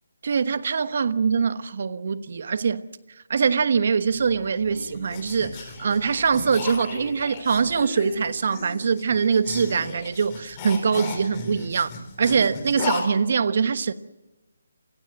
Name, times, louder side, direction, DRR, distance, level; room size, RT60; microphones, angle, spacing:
voice 1, 0.2-2.8 3.3-11.9 12.2-13.9, right 6 dB, 50° right, 1.2 m, -23 dB
sound 1, 4.2-13.0, left 4 dB, 25° left, 4.4 m, -35 dB
28.5 x 17.0 x 7.8 m
figure-of-eight pair, 160°, 0 cm